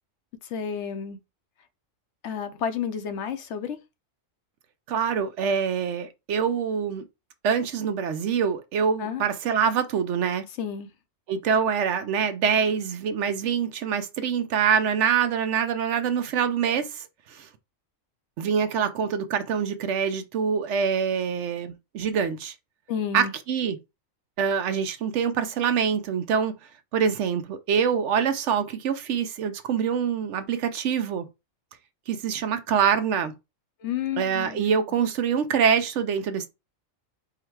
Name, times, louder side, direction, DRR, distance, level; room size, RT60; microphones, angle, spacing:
voice 1, 0.4-1.2 2.2-3.8 9.0-9.2 10.6-10.9 22.9-23.3 33.8-34.6, left 8 dB, 65° left, 0.9 m, -31 dB
voice 2, 4.9-7.1 7.4-10.4 11.3-17.5 18.4-22.5 23.1-23.8 24.4-26.5 26.9-31.3 32.1-33.3 34.2-36.5, right 7 dB, 70° right, 0.9 m, -25 dB
4.7 x 2.1 x 4.5 m
omnidirectional pair, 1.4 m